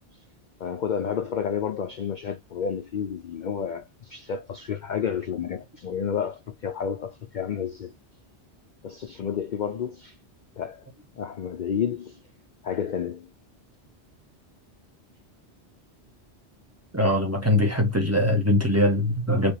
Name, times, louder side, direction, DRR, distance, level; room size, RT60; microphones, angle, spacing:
voice 1, 0.6-7.9 8.8-10.2 10.6-10.9 11.2-12.2 12.6-13.3, left 7 dB, 60° left, 0.5 m, -30 dB
voice 2, 16.9-19.5, left 1 dB, 15° right, 0.9 m, -22 dB
3.5 x 2.8 x 4.5 m
omnidirectional pair, 1.2 m